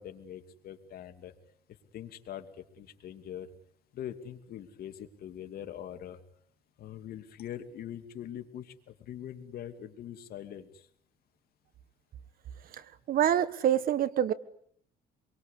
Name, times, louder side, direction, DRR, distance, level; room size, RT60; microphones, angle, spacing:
voice 1, 0.0-1.3 1.9-3.5 3.9-6.2 6.8-10.8, left 10 dB, 65° left, 2.7 m, -43 dB
voice 2, 13.1-14.3, right 10 dB, 60° right, 1.5 m, -25 dB
26.5 x 23.0 x 8.5 m
cardioid pair, 110°, 17 cm